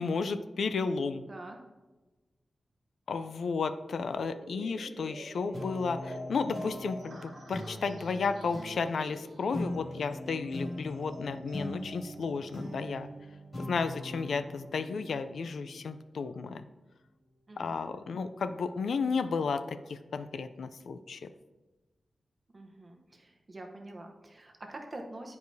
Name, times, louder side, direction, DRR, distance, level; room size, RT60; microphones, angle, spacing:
voice 1, 0.0-1.2 3.1-13.1 13.6-16.6 17.6-21.3, left 4 dB, 80° left, 11 dB, 0.3 m, -33 dB
voice 2, 1.3-1.6 17.5-18.0 22.5-25.4, right 2 dB, 30° right, 3 dB, 0.8 m, -46 dB
sound 1, 4.2-12.8, right 1 dB, 90° right, 1.0 m, -48 dB
sound 2, 5.5-16.4, left 1 dB, 50° left, 2.3 m, -42 dB
10.5 x 4.8 x 2.7 m, 1.2 s
wide cardioid pair, 170°, 0 cm